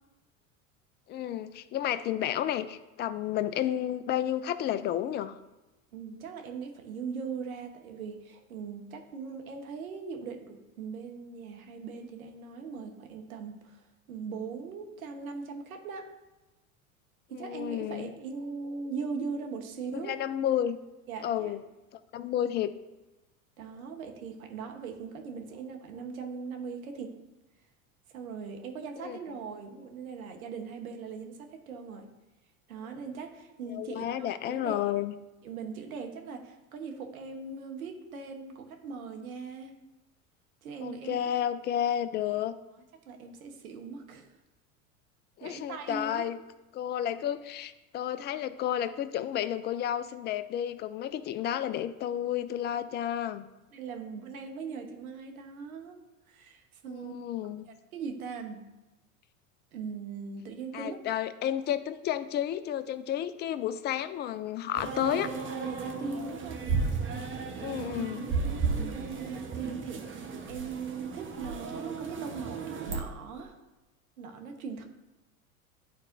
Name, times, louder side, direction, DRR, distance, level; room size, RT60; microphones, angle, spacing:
voice 1, 1.1-5.4 17.3-18.1 19.9-20.8 21.2-21.6 21.9-22.7 29.0-29.2 33.7-35.1 40.8-42.5 45.4-46.4 46.7-53.4 56.9-57.7 60.7-65.3 67.6-68.3, left 11 dB, 25° left, 14 dB, 0.3 m, -31 dB
voice 2, 5.9-16.1 17.3-20.2 21.1-21.5 23.6-27.1 28.1-32.1 32.7-34.9 35.4-39.7 40.6-41.1 43.1-44.3 45.4-46.3 53.7-57.1 57.9-58.6 59.7-61.0 65.6-66.6 67.4-67.9 68.6-73.6 74.2-74.8, right 5 dB, 80° right, 5 dB, 1.2 m, -40 dB
sound 1, 64.7-73.0, right 5 dB, 30° right, 1.1 m, -34 dB
12.0 x 4.2 x 2.6 m, 1.0 s
hypercardioid pair, 90°, 42 cm